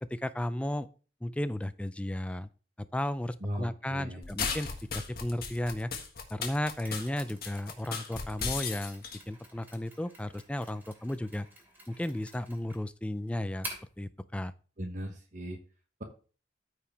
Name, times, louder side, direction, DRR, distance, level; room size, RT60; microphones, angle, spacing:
voice 1, 0.0-0.9 1.2-2.5 2.9-5.9 6.3-11.5 11.9-13.7 14.0-14.5, left 1 dB, 5° left, 13 dB, 0.3 m, -34 dB
voice 2, 3.4-4.2 14.8-15.6, equal, 40° right, 3 dB, 1.1 m, -38 dB
sound 1, 4.2-9.2, left 5 dB, 55° left, 1.6 m, -35 dB
Mechanisms, 6.8-14.0, right 1 dB, 10° right, 2.6 m, -49 dB
14.0 x 4.8 x 3.4 m, 0.38 s
head